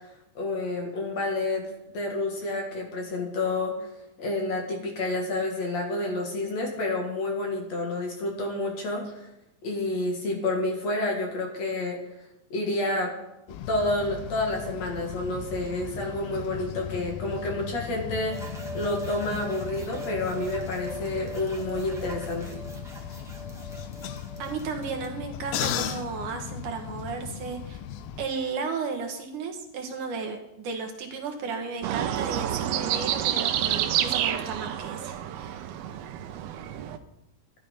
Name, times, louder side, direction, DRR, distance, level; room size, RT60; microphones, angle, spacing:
voice 1, 0.3-3.9 4.2-9.2 9.6-12.0 12.5-13.1 13.7-18.4 18.7-22.6, left 2 dB, 50° left, 0 dB, 3.0 m, -29 dB
sound 1, 13.5-28.3, left 8 dB, 85° left, 2.6 m, -37 dB
sound 2, 18.3-25.1, equal, ahead, 0.7 m, -41 dB
voice 2, 24.4-27.8 28.2-35.6, right 5 dB, 65° right, 4 dB, 2.5 m, -34 dB
sound 3, 31.8-37.0, right 11 dB, 85° right, 2.7 m, -29 dB
12.0 x 11.5 x 5.5 m, 0.92 s
omnidirectional pair, 4.2 m